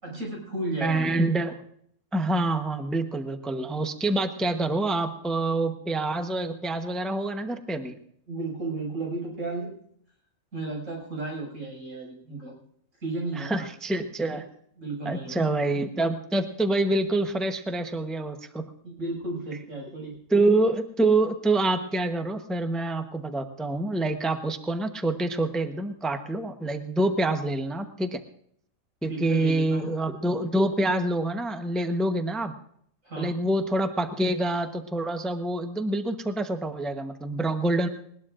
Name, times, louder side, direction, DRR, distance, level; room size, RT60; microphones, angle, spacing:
voice 1, 0.0-1.3 8.3-9.7 10.5-12.5 13.0-13.6 14.3-14.4 14.8-15.4 18.8-20.2 29.0-29.9 33.0-33.4, right 2 dB, 85° right, -1 dB, 6.3 m, -34 dB
voice 2, 0.8-1.5 2.1-7.9 13.4-14.4 15.0-18.7 20.3-28.2 29.0-32.5 33.2-37.9, right 2 dB, ahead, 6 dB, 0.8 m, -26 dB
20.0 x 20.0 x 2.5 m, 0.66 s
omnidirectional pair, 1.4 m